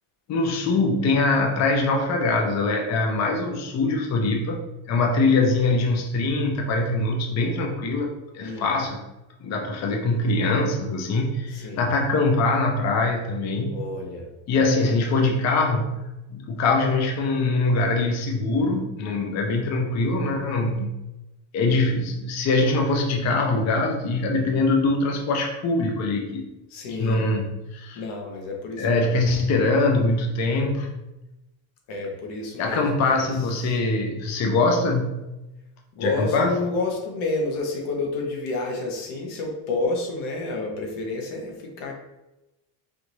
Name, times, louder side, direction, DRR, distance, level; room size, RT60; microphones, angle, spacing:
voice 1, 0.3-4.6 4.9-9.0 9.4-13.8 14.5-20.9 21.5-26.5 27.0-28.0 28.8-30.9 32.6-35.2 36.0-36.5, left 3 dB, 35° left, 2 dB, 0.6 m, -23 dB
voice 2, 8.4-8.7 11.5-11.9 13.7-14.3 26.7-27.3 27.9-29.2 31.9-33.8 35.9-41.9, left 3 dB, 65° left, 1 dB, 1.2 m, -30 dB
5.0 x 2.6 x 3.0 m, 0.97 s
cardioid pair, 150°, 45 cm